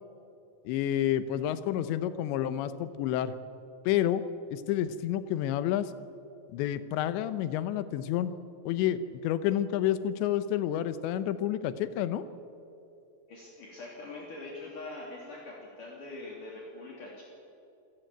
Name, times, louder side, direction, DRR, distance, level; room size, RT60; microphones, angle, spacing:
voice 1, 0.7-3.3 3.9-4.2 4.5-5.9 6.5-8.3 8.7-12.2, left 11 dB, 85° left, 12 dB, 3.2 m, -29 dB
voice 2, 13.3-17.2, left 2 dB, 50° left, -3 dB, 4.3 m, -43 dB
27.0 x 15.5 x 9.2 m, 2.7 s
omnidirectional pair, 5.0 m